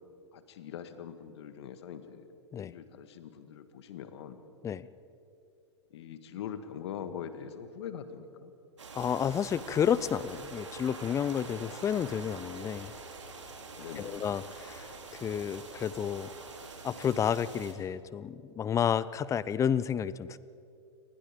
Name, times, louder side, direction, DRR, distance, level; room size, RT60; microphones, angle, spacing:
voice 1, 0.3-2.3 2.6-4.4 5.9-8.5 13.8-14.2, left 8 dB, 65° left, 9 dB, 2.0 m, -42 dB
sound 1, 8.8-17.7, right 3 dB, 90° right, 3.3 m, -45 dB
voice 2, 8.9-12.9 14.0-16.3 16.8-20.4, left 8 dB, 20° left, 18 dB, 0.6 m, -31 dB
29.5 x 20.5 x 5.3 m, 2.6 s
hypercardioid pair, 115°, 15 cm